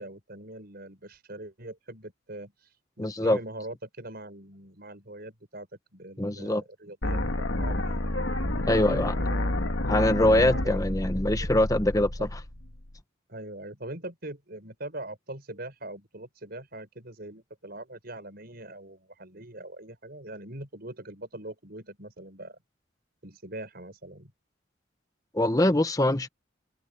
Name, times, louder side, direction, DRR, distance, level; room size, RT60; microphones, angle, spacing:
voice 1, 0.0-5.7 5.9-8.0 8.7-9.9 10.5-10.8 11.2-11.6 12.2-12.3 13.3-22.6 23.2-24.3, right 1 dB, 50° right, 6.1 m, -42 dB
voice 2, 3.0-3.4 6.2-6.6 8.7-9.1 9.9-12.1 25.3-26.3, left 1 dB, 20° left, 1.0 m, -23 dB
sound 1, 7.0-13.0, left 1 dB, 80° left, 1.8 m, -29 dB
head